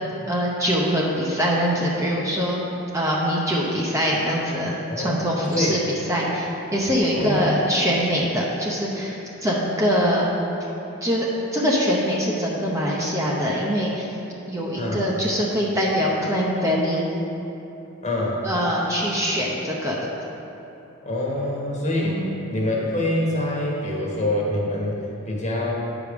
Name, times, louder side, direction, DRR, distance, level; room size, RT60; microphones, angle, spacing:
voice 1, 0.3-2.7 2.9-10.3 11.0-11.3 11.5-14.1 14.5-17.1 18.4-20.1 22.0-22.3, equal, 15° right, -4 dB, 0.8 m, -23 dB
voice 2, 4.9-5.8 7.1-7.6 14.8-15.0 18.0-18.4 21.0-22.2 22.5-25.7, left 1 dB, 30° left, -3 dB, 1.3 m, -25 dB
9.3 x 5.0 x 5.2 m, 3.0 s
head